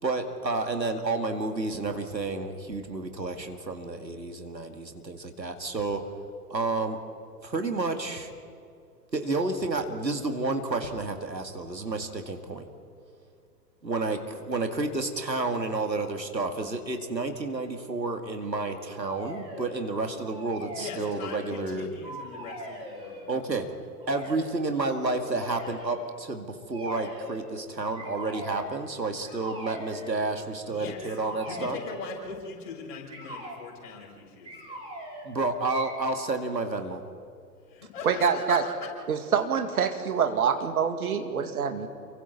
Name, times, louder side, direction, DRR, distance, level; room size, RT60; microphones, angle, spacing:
voice 1, 0.0-6.1 6.5-7.0 7.4-8.3 9.1-12.6 13.8-21.9 23.3-23.7 24.1-31.8 33.9-34.0 35.2-37.0, right 3 dB, 85° right, 5 dB, 2.3 m, -30 dB
sound 1, 18.9-19.8 20.2-21.7 22.0-23.3 24.0-24.5 25.3-26.0 26.7-27.4 27.9-28.7 29.2-30.2 31.0-32.2 33.1-33.6 34.4-35.3 35.7-36.3, right 1 dB, 10° right, 5.3 m, -41 dB
voice 2, 20.7-23.2 30.6-31.0 31.4-34.8 37.7-38.9, left 5 dB, 50° left, -3 dB, 6.7 m, -41 dB
voice 3, 38.0-38.6 39.1-41.9, right 7 dB, 60° right, 6 dB, 2.3 m, -25 dB
29.5 x 24.0 x 4.2 m, 2.4 s
figure-of-eight pair, 110°, 49 cm